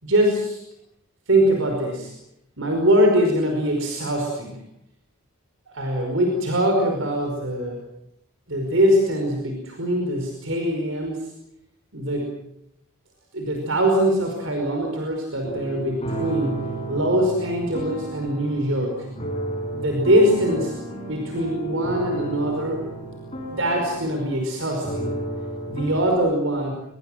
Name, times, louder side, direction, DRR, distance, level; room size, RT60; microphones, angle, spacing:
voice 1, 0.0-0.6 1.3-2.1 2.6-4.6 5.7-7.8 8.5-11.3 11.9-12.3 13.3-16.6 16.9-18.9 19.7-20.7 21.1-22.8 23.5-25.2 25.7-26.7, right 1 dB, 65° right, 2 dB, 5.2 m, -22 dB
sound 1, 15.4-26.1, right 2 dB, 30° left, 5.4 m, -32 dB
25.5 x 22.0 x 7.8 m, 0.79 s
head